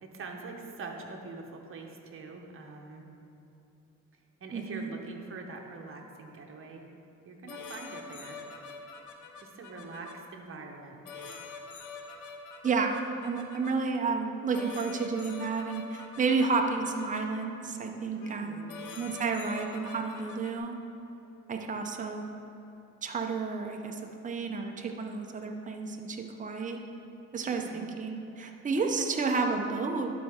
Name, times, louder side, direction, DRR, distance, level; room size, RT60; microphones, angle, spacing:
voice 1, 0.0-3.1 4.4-6.9 7.2-8.4 9.4-11.0 18.1-18.8 27.4-27.9 28.8-29.2, right 3 dB, 45° right, 1 dB, 1.0 m, -44 dB
voice 2, 4.5-4.9 12.6-13.0 13.2-18.6 18.9-20.7 21.5-22.2 23.0-26.8 27.3-30.1, right 4 dB, 25° right, 3 dB, 0.7 m, -31 dB
sound 1, 7.5-10.1 11.1-13.7 14.5-17.2 18.2-18.4 18.7-20.6, left 4 dB, 80° left, 0.8 m, -45 dB
11.5 x 4.3 x 3.6 m, 3.0 s
cardioid pair, 90°, 30 cm